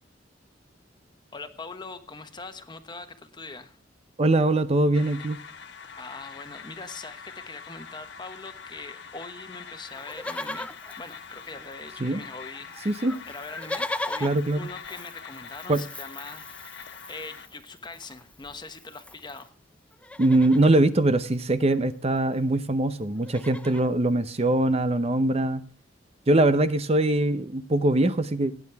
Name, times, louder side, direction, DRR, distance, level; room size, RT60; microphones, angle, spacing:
voice 1, 1.3-3.8 6.0-10.7 11.0-13.0 13.3-19.5, left 3 dB, 25° left, 8 dB, 1.2 m, -42 dB
voice 2, 4.2-5.4 12.0-12.2 12.9-13.1 14.2-14.7 15.7-15.8 20.2-25.6 26.3-28.6, right 2 dB, 35° right, 11 dB, 0.7 m, -22 dB
sound 1, 4.9-17.5, left 6 dB, 65° left, 1.4 m, -44 dB
Livestock farm animals working animals, 9.9-12.0 12.2-12.3 12.5-19.5 19.9-20.8 22.1-22.2 22.3-22.6 23.0-23.9 24.5-24.6, left 2 dB, 5° left, 0.5 m, -39 dB
18.0 x 9.5 x 3.4 m, 0.42 s
head